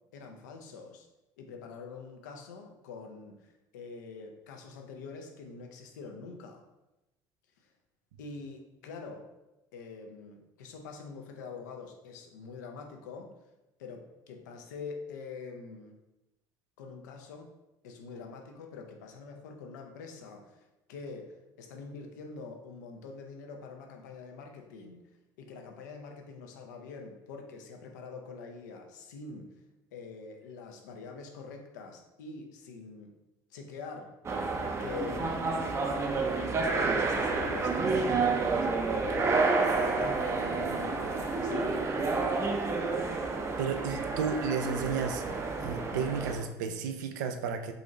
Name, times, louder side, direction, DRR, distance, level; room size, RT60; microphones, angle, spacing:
voice 1, 0.1-1.1 1.4-6.6 8.2-9.2 9.7-13.3 13.8-16.0 16.8-17.5 17.8-25.0 25.4-29.5 29.9-33.1 33.5-34.1 34.8-39.4 39.7-42.4, left 4 dB, 90° left, 3 dB, 0.6 m, -45 dB
sound 1, 34.2-46.4, right 3 dB, 30° right, 0.5 m, -29 dB
voice 2, 43.6-45.2 45.6-47.7, right 6 dB, 85° right, 7 dB, 0.4 m, -32 dB
3.9 x 2.6 x 3.0 m, 0.95 s
supercardioid pair, 80°, 9 cm